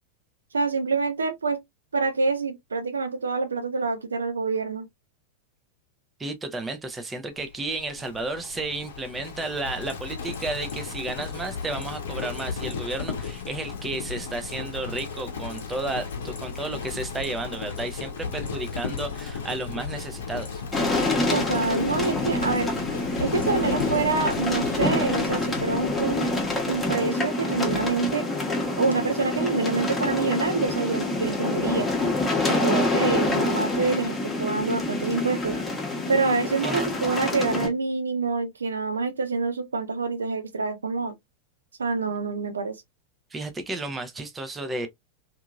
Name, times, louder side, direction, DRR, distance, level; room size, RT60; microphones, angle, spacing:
voice 1, 0.5-1.6 1.9-4.8 21.3-22.7 23.2-26.3 26.7-28.3 28.8-31.9 32.5-35.6 36.1-41.1 41.8-42.8, right 4 dB, 75° right, 0.5 m, -26 dB
voice 2, 6.2-20.6 36.6-36.9 43.3-44.9, right 2 dB, 15° right, 0.6 m, -32 dB
Livestock farm animals working animals, 7.4-27.0, left 5 dB, 60° left, 0.7 m, -35 dB
sound 1, 20.7-37.7, left 2 dB, 10° left, 0.9 m, -26 dB
2.7 x 2.6 x 2.3 m
figure-of-eight pair, 90°, 0 cm